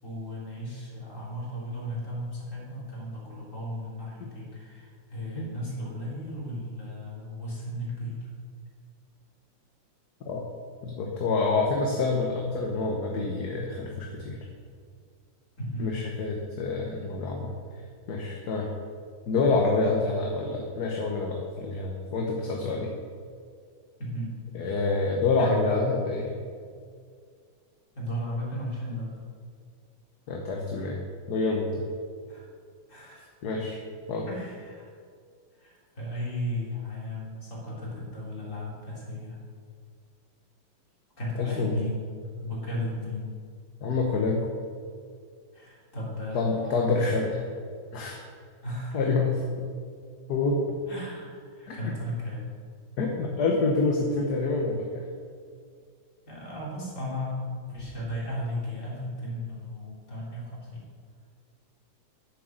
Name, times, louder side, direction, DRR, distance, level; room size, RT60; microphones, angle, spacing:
voice 1, 0.0-8.3 15.6-15.9 24.0-24.3 25.4-25.7 28.0-29.2 32.3-32.5 32.9-33.3 34.3-34.9 35.6-39.4 41.2-42.1 42.4-43.3 45.5-47.2 48.6-49.0 50.9-52.5 56.3-60.8, left 1 dB, 35° left, -6 dB, 3.7 m, -35 dB
voice 2, 10.8-14.4 15.8-17.5 18.1-18.7 19.3-22.9 24.5-26.3 30.3-31.0 31.3-31.9 33.4-33.8 34.1-34.3 41.4-41.7 43.8-44.4 46.3-47.4 47.9-48.2 48.9-49.4 50.3-50.8 51.7-51.9 53.0-55.1, left 3 dB, 55° left, 0 dB, 1.5 m, -27 dB
10.0 x 7.7 x 6.5 m, 2.1 s
omnidirectional pair, 2.2 m